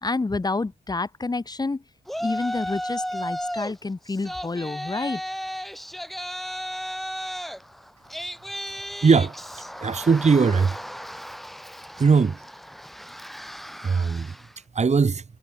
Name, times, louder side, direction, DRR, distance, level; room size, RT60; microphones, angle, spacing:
voice 1, 0.0-1.8 2.2-5.2, left 3 dB, 25° left, 1.3 m, -28 dB
Yell, 2.1-3.7 4.1-14.5, equal, ahead, 3.1 m, -34 dB
voice 2, 9.0-9.4 9.8-10.8 12.0-12.4 13.8-14.3 14.7-15.2, right 5 dB, 40° right, 2.1 m, -19 dB
wide cardioid pair, 135°, 17 cm